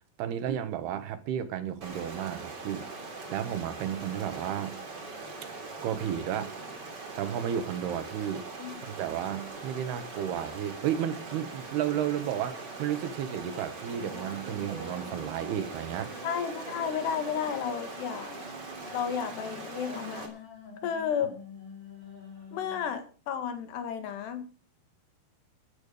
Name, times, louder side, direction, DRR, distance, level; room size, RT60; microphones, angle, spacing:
voice 1, 0.2-2.9 3.3-4.8 5.4-5.5 5.8-6.6 7.2-8.5 8.8-16.1, right 10 dB, 75° right, 3.2 m, -32 dB
Stream, 1.8-20.3, right 3 dB, 30° right, 3.1 m, -42 dB
sound 1, 14.0-23.0, left 2 dB, 25° left, 4.1 m, -46 dB
voice 2, 16.2-18.4 18.9-20.3 20.8-21.3 22.5-24.5, left 8 dB, 80° left, 3.9 m, -32 dB
15.0 x 11.0 x 5.2 m
omnidirectional pair, 4.8 m